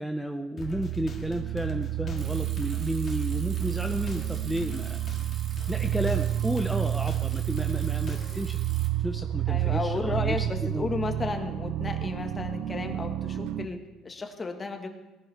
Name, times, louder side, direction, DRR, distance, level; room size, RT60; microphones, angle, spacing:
voice 1, 0.0-5.0 5.7-8.6 9.0-10.9, equal, ahead, 6 dB, 0.5 m, -32 dB
sound 1, 0.6-8.5, left 4 dB, 40° left, 1.6 m, -45 dB
sound 2, 0.6-13.7, right 13 dB, 70° right, 0.5 m, -30 dB
Bicycle, 2.2-8.9, right 4 dB, 50° right, 2.4 m, -48 dB
voice 2, 9.5-14.9, left 3 dB, 25° left, 5 dB, 1.3 m, -33 dB
18.0 x 10.5 x 3.3 m, 1.1 s
cardioid pair, 115°, 0 cm